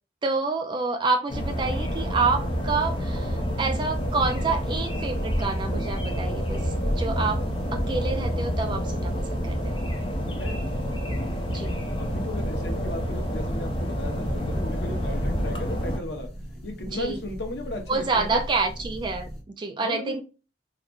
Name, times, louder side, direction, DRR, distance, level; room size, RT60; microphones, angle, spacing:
voice 1, 0.2-7.4 7.7-9.9 11.5-11.8 16.9-17.2 17.9-20.2, right 4 dB, 25° right, 0.3 m, -28 dB
sound 1, 1.3-16.0, equal, 30° left, 0.7 m, -28 dB
sound 2, 3.9-19.4, equal, ahead, 0.8 m, -40 dB
voice 2, 10.3-10.7 12.0-16.3 16.6-18.4 19.8-20.2, left 1 dB, 75° left, 0.9 m, -35 dB
3.8 x 2.1 x 3.0 m
head